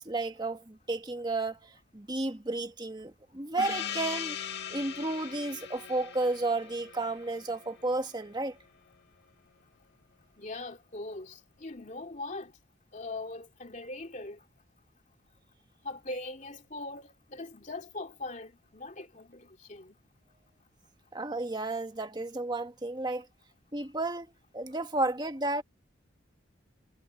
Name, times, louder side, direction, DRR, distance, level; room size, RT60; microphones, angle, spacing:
voice 1, 0.0-4.4 4.7-8.6 21.1-23.3 23.7-24.3 24.5-25.6, right 2 dB, 20° right, 1.5 m, -32 dB
Gong, 3.6-8.6, left 9 dB, 55° left, 1.8 m, -40 dB
voice 2, 10.4-12.5 12.9-14.4 15.8-20.0, left 2 dB, 40° left, 2.3 m, -41 dB
head